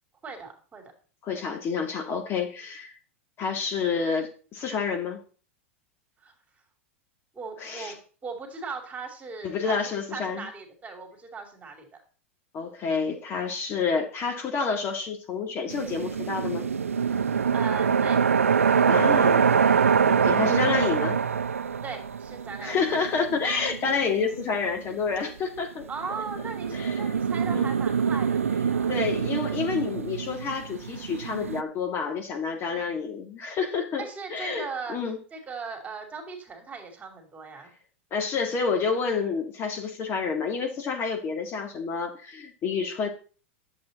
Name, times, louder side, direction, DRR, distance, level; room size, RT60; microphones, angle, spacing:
voice 1, 0.2-0.9 6.2-6.3 7.3-12.0 17.5-18.2 18.5-19.3 21.8-22.8 25.9-28.9 32.7-33.0 34.0-35.0 35.3-37.7, right 4 dB, 20° right, 4 dB, 2.8 m, -39 dB
voice 2, 1.2-3.0 3.4-5.2 7.6-7.9 9.4-10.5 12.5-16.7 18.9-21.2 22.6-25.8 26.7-27.2 27.4-27.7 28.9-34.0 34.3-35.2 38.1-43.1, left 5 dB, 35° left, 3 dB, 1.8 m, -29 dB
sound 1, 15.7-25.1 25.9-31.6, right 6 dB, 85° right, 0.5 m, -25 dB
10.5 x 7.6 x 4.0 m, 0.40 s
hypercardioid pair, 95°, 7 cm